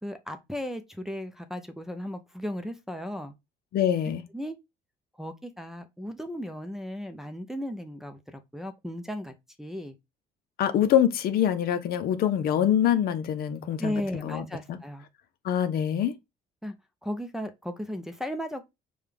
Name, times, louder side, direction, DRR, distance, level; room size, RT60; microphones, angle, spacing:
voice 1, 0.0-3.3 4.3-4.6 5.2-10.0 13.8-15.0 16.6-16.7 17.0-18.6, equal, ahead, 0.5 m, -35 dB
voice 2, 3.7-4.2 10.6-14.8 15.4-16.1, left 10 dB, 65° left, 0.6 m, -25 dB
4.9 x 2.3 x 3.4 m
cardioid pair, 110°, 17 cm